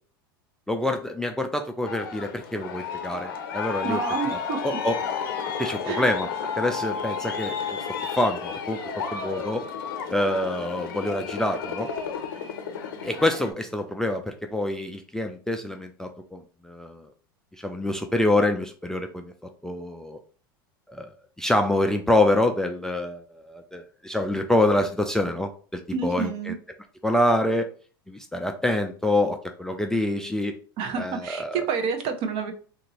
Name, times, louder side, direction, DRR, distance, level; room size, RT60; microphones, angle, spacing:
voice 1, 0.7-4.0 4.6-5.0 5.6-6.3 6.6-7.8 8.1-9.6 10.1-11.9 13.0-17.1 17.6-19.3 19.6-20.2 20.9-21.1 21.4-26.5 27.0-27.7 28.1-30.5 31.0-31.7, left 1 dB, 5° left, 5 dB, 0.3 m, -26 dB
Aircraft, 1.8-13.5, left 6 dB, 75° left, 0.6 m, -32 dB
voice 2, 3.8-4.6 5.9-6.1 25.9-26.5 30.8-32.5, right 5 dB, 50° right, 7 dB, 0.7 m, -28 dB
2.8 x 2.5 x 2.9 m, 0.40 s
hypercardioid pair, 95°, 12 cm